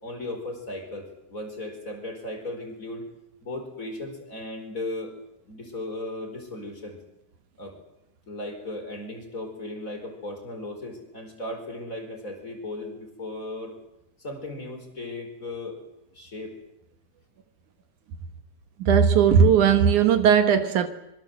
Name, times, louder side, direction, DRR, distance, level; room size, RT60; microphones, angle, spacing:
voice 1, 0.0-3.1 3.4-5.1 5.5-7.0 7.6-7.8 8.3-13.7 14.2-15.8 16.1-16.6, left 2 dB, 25° left, 4.9 m, -36 dB
voice 2, 18.8-20.9, right 7 dB, 70° right, 2.7 m, -18 dB
25.5 x 23.0 x 7.9 m
omnidirectional pair, 3.7 m